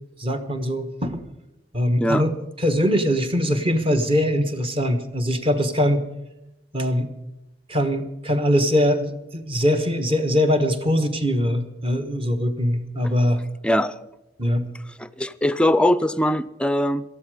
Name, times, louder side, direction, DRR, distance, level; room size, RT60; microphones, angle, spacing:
voice 1, 0.2-1.2 1.7-2.3 2.6-6.0 6.7-7.1 7.7-13.4 14.4-14.7, equal, 30° right, 7 dB, 1.3 m, -22 dB
voice 2, 13.6-14.0 15.0-17.0, left 1 dB, 5° left, 14 dB, 0.4 m, -21 dB
18.0 x 13.5 x 4.9 m, 0.93 s
head